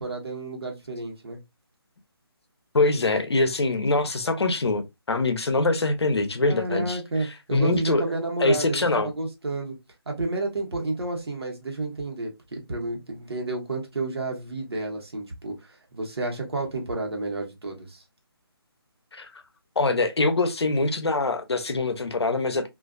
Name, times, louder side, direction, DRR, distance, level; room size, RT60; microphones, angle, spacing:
voice 1, 0.0-1.4 6.5-9.7 10.1-18.0, right 2 dB, 75° right, 1.0 m, -31 dB
voice 2, 2.7-7.0 7.5-8.0 8.4-9.1 19.1-19.3 19.8-22.7, left 2 dB, 90° left, 0.6 m, -23 dB
2.5 x 2.4 x 2.3 m
figure-of-eight pair, 160°, 13 cm